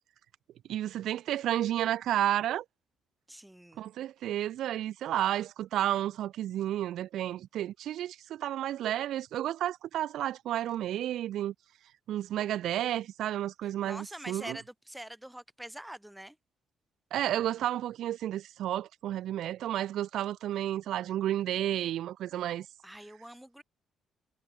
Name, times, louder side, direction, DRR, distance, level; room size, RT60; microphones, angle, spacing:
voice 1, 0.7-2.6 3.8-11.5 12.1-14.6 17.1-22.7, right 12 dB, 80° right, 0.7 m, -31 dB
voice 2, 3.3-3.8 13.6-16.4 22.8-23.6, right 1 dB, 5° right, 1.4 m, -45 dB
cardioid pair, 90°, 0 cm